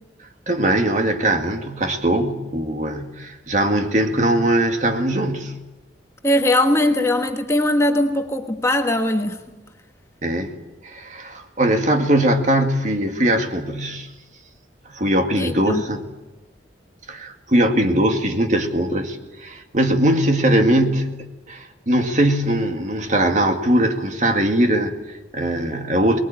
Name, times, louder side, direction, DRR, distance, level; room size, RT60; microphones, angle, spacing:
voice 1, 0.5-5.5 10.2-10.5 10.8-14.1 14.9-16.0 17.1-26.2, right 1 dB, 40° right, 2.1 m, -20 dB
voice 2, 6.2-9.4 15.3-15.8, left 1 dB, 15° left, 1.4 m, -20 dB
24.0 x 21.0 x 8.9 m
head